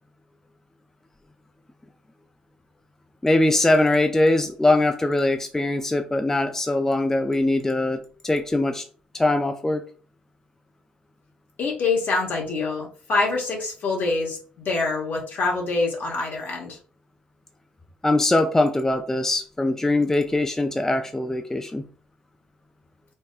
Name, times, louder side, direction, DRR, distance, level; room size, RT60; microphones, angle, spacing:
voice 1, 3.2-8.8 9.1-9.8 18.0-21.8, left 2 dB, 10° left, 6 dB, 0.3 m, -22 dB
voice 2, 11.6-16.8, left 3 dB, 55° left, -1 dB, 1.1 m, -25 dB
3.3 x 2.1 x 2.4 m, 0.42 s
hypercardioid pair, 50°, 4 cm